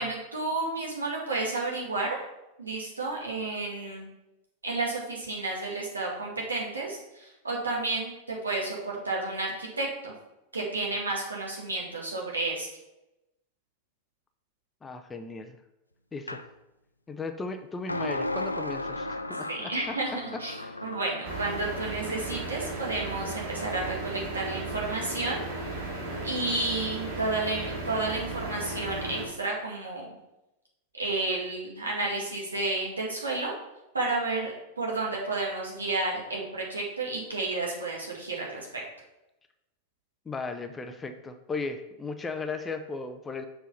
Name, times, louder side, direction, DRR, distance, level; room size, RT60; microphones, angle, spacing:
voice 1, 0.0-2.2 2.6-4.1 4.6-10.1 10.5-12.7 19.5-20.6 20.8-25.4 26.2-30.1 31.0-33.5 33.9-38.7, right 2 dB, 75° right, -3 dB, 2.1 m, -31 dB
voice 2, 14.8-15.6 16.1-16.4 17.1-20.0 20.3-20.8 40.3-43.5, left 4 dB, 15° left, 7 dB, 0.7 m, -36 dB
sound 1, 16.3-16.5 17.9-21.7, left 1 dB, 85° left, 0.4 m, -35 dB
sound 2, 21.2-29.3, right 2 dB, 60° right, 2.4 m, -35 dB
6.9 x 4.5 x 5.8 m, 0.93 s
figure-of-eight pair, 90°, 0 cm